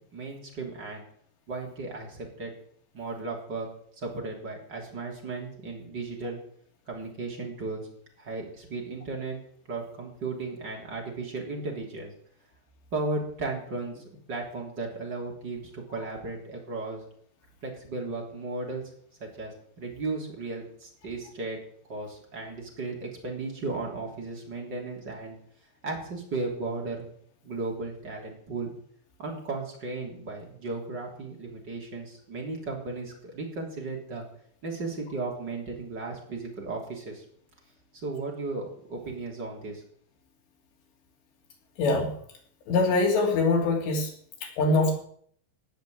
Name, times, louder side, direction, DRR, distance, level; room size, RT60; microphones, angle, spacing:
voice 1, 0.1-1.0 1.5-2.5 2.9-3.7 4.0-6.4 6.9-7.9 8.2-9.4 9.7-12.1 12.9-17.0 17.6-18.8 19.2-21.6 21.9-25.4 25.8-27.1 27.4-28.7 29.2-34.2 34.6-37.2 38.0-39.8, right 3 dB, 25° right, 0 dB, 3.3 m, -35 dB
voice 2, 41.8-42.1 42.7-44.1 44.4-45.0, left 3 dB, 80° left, 1 dB, 5.1 m, -23 dB
18.0 x 6.6 x 8.4 m, 0.63 s
omnidirectional pair, 5.0 m